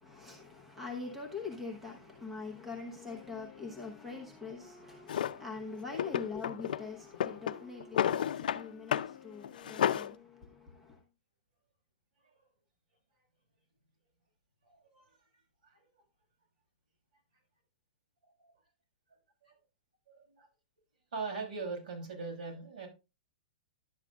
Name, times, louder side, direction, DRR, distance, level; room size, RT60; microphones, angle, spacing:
voice 1, 0.0-11.0, left 4 dB, 5° right, 0.9 m, -43 dB
Wind instrument woodwind instrument, 2.5-11.1, left 8 dB, 15° left, 0.6 m, -56 dB
Drawer open or close, 5.1-5.4 5.9-6.8 7.1-8.6 8.9-9.1 9.4-10.1, left 10 dB, 75° left, 0.5 m, -31 dB
voice 2, 14.7-15.2 15.6-15.8 18.4-18.5 19.4-19.6 20.1-20.5 21.1-22.9, right 4 dB, 80° right, 5.4 m, -41 dB
11.0 x 8.2 x 2.4 m
supercardioid pair, 175°, 5 cm